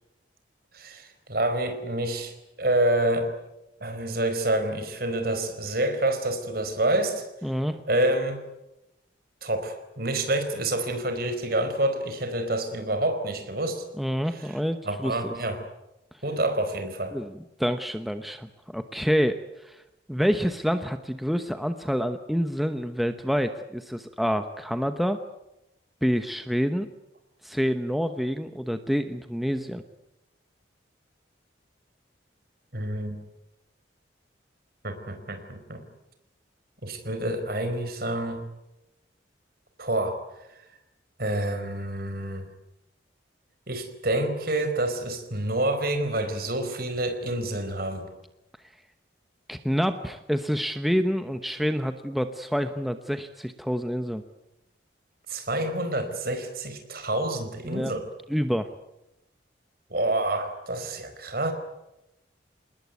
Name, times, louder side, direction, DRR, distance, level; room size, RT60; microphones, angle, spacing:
voice 1, 0.7-3.3 3.8-7.2 7.9-8.4 9.4-13.8 14.4-14.6 14.8-15.6 16.2-17.2 32.7-33.2 34.8-35.8 36.8-38.4 39.8-40.2 41.2-42.5 43.7-48.1 55.3-58.1 59.9-61.5, right 1 dB, 50° right, 8 dB, 4.7 m, -28 dB
voice 2, 7.4-7.8 14.0-15.3 17.1-19.8 20.1-25.2 26.0-26.9 27.4-29.8 49.5-54.2 57.7-57.9 58.3-58.7, equal, ahead, 8 dB, 1.0 m, -27 dB
27.5 x 20.5 x 9.5 m, 0.91 s
head